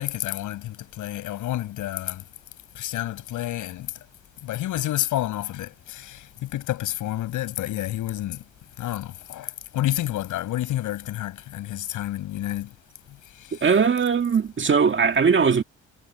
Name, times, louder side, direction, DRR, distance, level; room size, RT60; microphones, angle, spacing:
voice 1, 0.0-2.2 2.8-3.9 4.4-8.4 8.8-12.7, left 14 dB, 85° left, 6.9 m, -29 dB
voice 2, 13.5-15.6, right 6 dB, 40° right, 2.0 m, -20 dB
cardioid pair, 90°, 30 cm